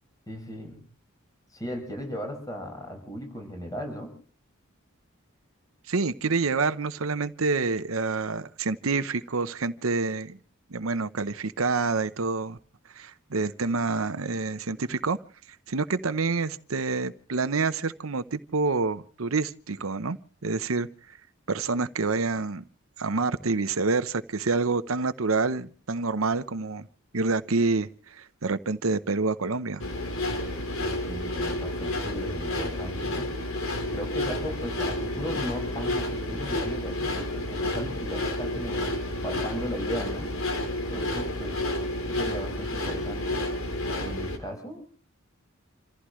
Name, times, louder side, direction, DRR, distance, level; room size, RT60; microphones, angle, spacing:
voice 1, 0.3-0.8 1.5-4.1 30.8-33.3 33.9-38.9 39.2-40.3 40.9-41.7 42.1-43.4 44.0-44.8, equal, 15° left, 5.6 m, -37 dB
voice 2, 5.9-10.4 10.7-12.6 12.9-15.2 15.7-20.2 20.4-21.2 21.5-22.6 23.0-26.9 27.1-29.8, right 3 dB, 85° right, 0.9 m, -27 dB
sound 1, 29.8-44.4, left 1 dB, 90° left, 3.7 m, -30 dB
28.0 x 15.0 x 3.2 m
head